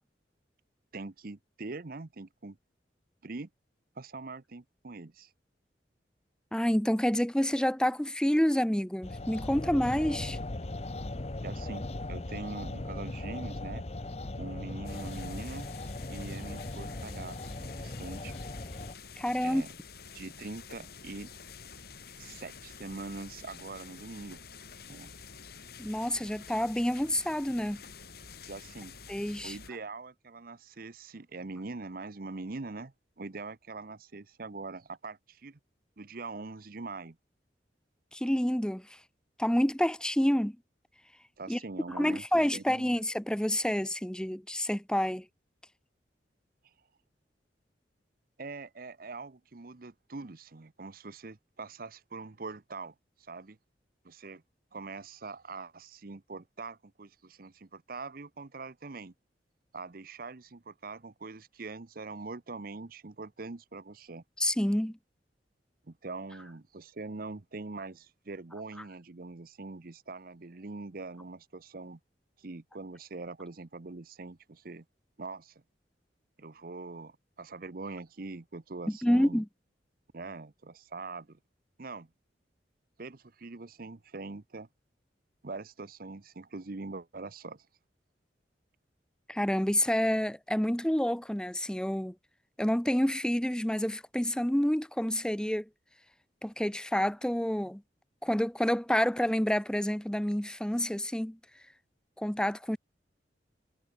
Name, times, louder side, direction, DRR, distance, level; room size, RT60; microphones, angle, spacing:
voice 1, 0.9-2.6 3.2-3.5 4.0-5.3 11.4-13.8 14.4-15.7 16.1-18.3 19.4-19.7 20.1-21.3 22.2-24.4 24.9-25.1 28.5-29.0 29.4-35.6 36.0-37.2 41.4-42.9 48.4-53.6 54.0-54.4 54.7-59.1 59.7-64.2 65.9-72.0 72.4-74.8 75.2-75.6 76.4-79.4 80.1-81.4 81.8-82.1 83.0-84.7 85.4-87.7, right 3 dB, 55° right, 0.8 m, -43 dB
voice 2, 6.5-10.4 19.2-19.6 25.8-27.8 29.1-29.6 38.1-38.9 39.4-40.6 41.5-41.6 42.0-45.2 64.4-65.0 78.9-79.5 89.3-92.1 92.6-95.7 96.4-97.8 98.2-101.4 102.2-102.8, equal, 5° left, 0.7 m, -28 dB
sound 1, 9.0-18.9, left 2 dB, 35° left, 0.9 m, -38 dB
sound 2, 14.8-29.7, left 5 dB, 60° left, 6.2 m, -49 dB
head